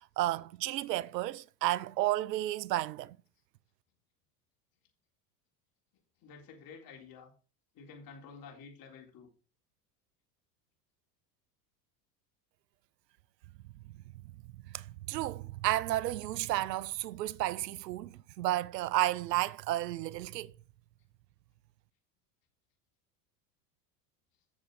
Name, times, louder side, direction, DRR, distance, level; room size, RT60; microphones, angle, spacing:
voice 1, 0.2-3.2 14.7-20.5, right 15 dB, 90° right, 0.6 m, -32 dB
voice 2, 6.2-7.3 7.7-9.3, left 5 dB, 45° left, 3.7 m, -50 dB
8.7 x 7.3 x 4.9 m
hypercardioid pair, 95°, 48 cm